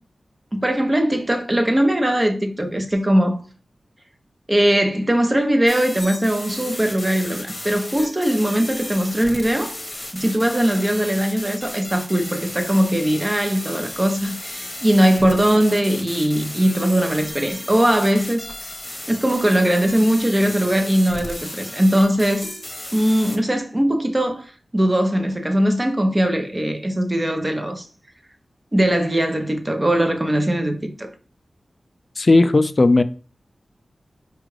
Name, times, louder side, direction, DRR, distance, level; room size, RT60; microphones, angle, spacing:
voice 1, 0.5-3.4 4.5-9.7 10.1-18.4 19.1-22.5 22.9-27.9 28.7-31.1, right 1 dB, 30° right, 0.7 m, -20 dB
sound 1, 5.7-23.4, left 1 dB, 25° left, 1.0 m, -34 dB
voice 2, 32.2-33.0, left 2 dB, 50° left, 0.3 m, -15 dB
4.5 x 2.4 x 3.1 m
cardioid pair, 45°, 0 cm